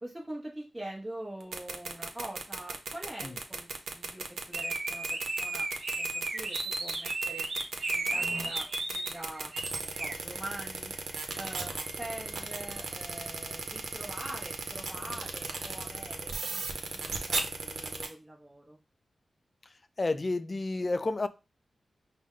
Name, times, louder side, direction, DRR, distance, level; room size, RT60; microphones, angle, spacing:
voice 1, 0.0-5.7 6.0-7.5 7.9-10.9 11.3-11.7 12.0-18.8, right 1 dB, 15° right, 0.8 m, -44 dB
sound 1, 1.4-18.1, right 4 dB, 85° right, 0.7 m, -35 dB
sound 2, 4.5-9.1 9.5-10.1, right 2 dB, 60° right, 0.9 m, -34 dB
sound 3, 7.3-16.6, right 1 dB, 10° left, 1.4 m, -52 dB
voice 2, 20.0-21.3, left 2 dB, 35° left, 0.4 m, -30 dB
5.0 x 2.2 x 3.7 m
wide cardioid pair, 85°, 0 cm